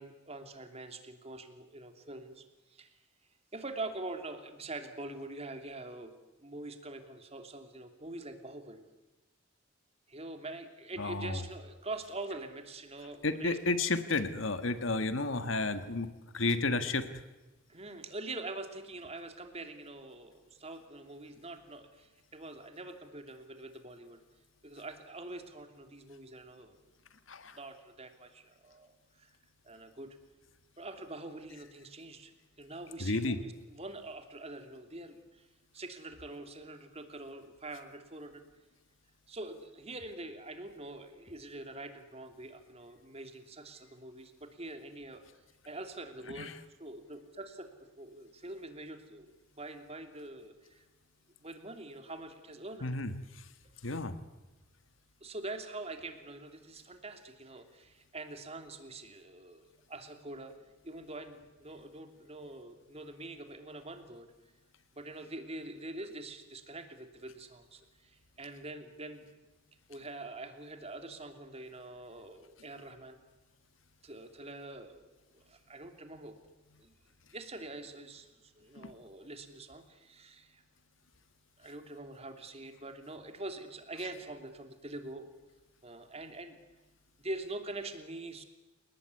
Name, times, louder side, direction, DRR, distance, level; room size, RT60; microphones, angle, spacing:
voice 1, 0.0-3.0 3.5-6.1 6.4-8.8 10.1-13.6 17.7-24.2 24.6-26.8 27.5-28.9 29.2-29.3 29.6-30.2 30.8-32.3 32.6-35.5 35.7-38.4 39.3-45.2 45.6-47.7 48.0-50.8 51.4-52.9 55.2-60.5 60.8-64.3 64.9-69.2 69.9-73.2 74.0-76.4 76.8-76.9 77.3-80.6 81.6-85.3 85.8-86.6 87.2-88.4, right 2 dB, 30° right, 7 dB, 3.0 m, -44 dB
voice 2, 11.0-11.4 13.2-17.1 27.3-27.6 33.0-33.4 46.4-46.5 52.8-53.1 53.8-54.1 78.8-78.9, left 3 dB, 75° left, 11 dB, 1.6 m, -32 dB
29.5 x 19.0 x 9.8 m, 1.1 s
head